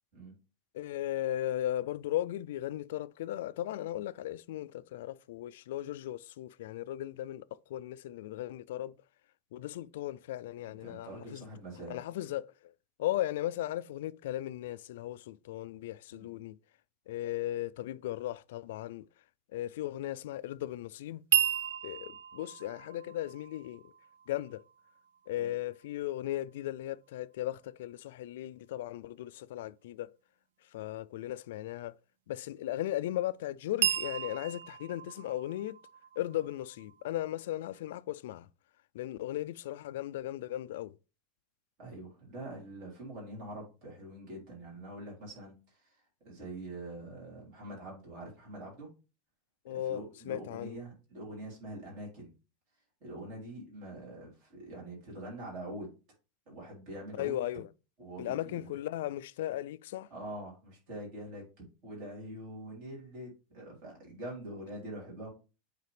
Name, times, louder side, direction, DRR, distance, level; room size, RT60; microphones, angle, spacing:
voice 1, 0.7-8.9 9.5-11.4 11.9-12.7 13.0-16.6 17.1-19.1 19.5-21.2 21.8-23.9 24.3-24.6 25.3-30.1 30.7-31.9 32.3-35.8 36.2-38.5 38.9-41.0 49.6-50.8 57.2-57.7 58.2-60.1, left 13 dB, 65° left, 0.3 m, -37 dB
voice 2, 10.6-12.0 16.1-16.3 25.4-25.5 41.8-48.9 49.7-52.3 53.0-55.9 56.5-57.4 58.0-58.7 60.1-65.3, right 1 dB, 35° right, 3.9 m, -44 dB
sound 1, 21.3-25.4 33.8-37.6, right 11 dB, 75° right, 0.4 m, -35 dB
8.3 x 4.1 x 3.3 m
supercardioid pair, 180°, 0 cm